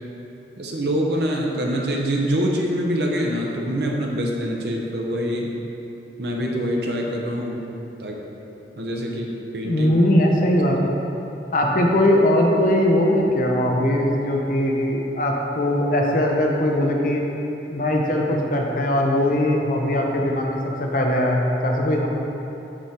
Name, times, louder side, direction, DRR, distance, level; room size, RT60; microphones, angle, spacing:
voice 1, 0.6-5.5 6.2-7.7 8.0-8.2 8.8-9.3 9.5-9.9, equal, 65° right, -1 dB, 0.8 m, -25 dB
voice 2, 9.6-11.0 11.5-17.2 17.7-22.1, left 1 dB, 50° left, 0 dB, 0.7 m, -20 dB
6.1 x 4.9 x 4.4 m, 2.9 s
head